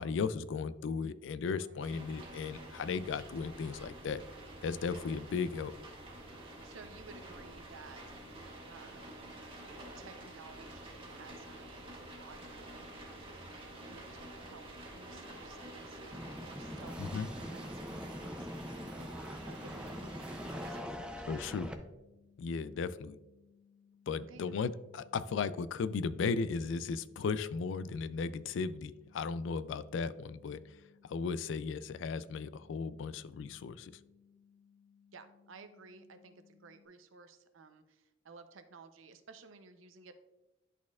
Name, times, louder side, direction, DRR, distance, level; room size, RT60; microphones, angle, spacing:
voice 1, 0.0-4.2 4.6-5.7 17.0-17.3 21.3-21.7 22.4-23.2 24.1-30.6 31.0-33.9, left 5 dB, 65° left, 15 dB, 0.3 m, -36 dB
voice 2, 1.5-1.9 6.6-8.3 8.7-9.3 10.0-13.0 13.4-21.5 24.3-24.6 35.1-40.1, right 4 dB, 80° right, 9 dB, 0.6 m, -56 dB
sound 1, 1.8-20.8, right 1 dB, 30° right, 1.3 m, -49 dB
sound 2, 16.1-21.7, equal, 5° right, 0.4 m, -43 dB
sound 3, 19.8-36.9, left 7 dB, 40° left, 1.1 m, -65 dB
11.0 x 4.2 x 2.4 m, 1.0 s
head